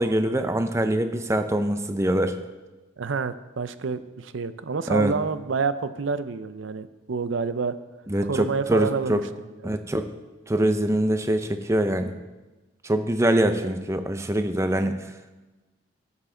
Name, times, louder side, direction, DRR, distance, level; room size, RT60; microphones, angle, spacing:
voice 1, 0.0-2.4 4.9-5.1 8.1-9.2 9.6-10.1 10.5-12.1 12.8-15.0, right 1 dB, 15° right, 8 dB, 0.5 m, -24 dB
voice 2, 3.0-7.8 8.2-9.2 13.5-13.7, right 5 dB, 65° right, 12 dB, 0.5 m, -28 dB
13.0 x 7.3 x 3.9 m, 1.2 s
head